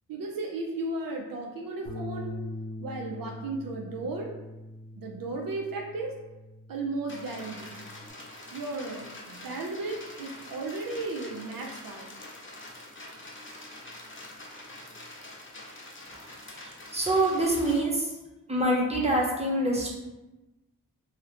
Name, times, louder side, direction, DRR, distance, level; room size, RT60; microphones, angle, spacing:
voice 1, 0.1-2.3 2.8-4.3 5.0-6.1 6.7-7.7 8.5-12.1, right 2 dB, 70° right, 1 dB, 0.5 m, -35 dB
Bass guitar, 1.9-8.1, left 1 dB, 90° left, 0.6 m, -42 dB
sound 1, 7.1-17.8, left 1 dB, 35° left, 0.9 m, -45 dB
voice 2, 16.5-18.2 18.5-19.9, right 1 dB, 20° right, -2 dB, 0.9 m, -26 dB
2.8 x 2.3 x 3.3 m, 1.0 s
cardioid pair, 45°, 35 cm